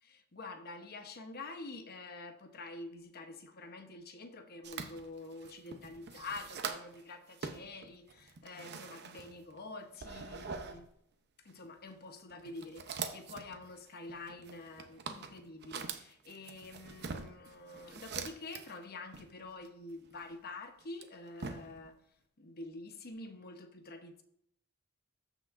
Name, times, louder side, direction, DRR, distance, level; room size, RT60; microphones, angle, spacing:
voice 1, 0.0-10.9 11.4-21.9 22.4-24.2, left 2 dB, 45° left, 1.0 m, -47 dB
sound 1, 4.6-7.0 7.3-9.6 9.9-10.8 11.5-11.7 12.3-18.8 19.1-20.3 20.8-21.9, right 5 dB, 50° right, 0.7 m, -44 dB
13.5 x 6.0 x 2.5 m
head